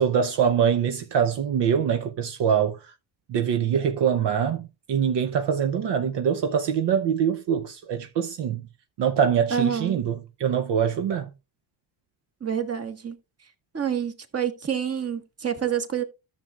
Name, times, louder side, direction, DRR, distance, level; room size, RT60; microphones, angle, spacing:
voice 1, 0.0-2.9 3.3-8.6 9.0-11.3, right 8 dB, 60° right, 0.9 m, -24 dB
voice 2, 9.5-10.0 12.4-13.2 13.7-16.0, right 8 dB, 30° right, 1.5 m, -27 dB
13.0 x 6.8 x 2.4 m
cardioid pair, 80°, 47 cm